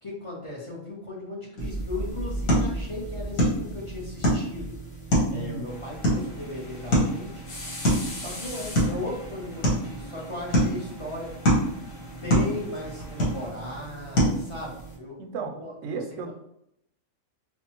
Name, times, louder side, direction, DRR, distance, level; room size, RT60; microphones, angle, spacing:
voice 1, 0.0-4.7 5.3-7.4 8.1-11.3 11.9-16.3, left 2 dB, 25° left, -4 dB, 0.8 m, -37 dB
sound 1, 1.6-15.0, equal, 70° left, 1.8 m, -27 dB
voice 2, 5.3-5.7 15.2-15.6 15.8-16.3, right 5 dB, 70° right, 5 dB, 0.8 m, -34 dB
sound 2, 5.7-13.5, left 1 dB, 50° left, 1.0 m, -42 dB
4.4 x 2.4 x 2.9 m, 0.76 s
omnidirectional pair, 1.5 m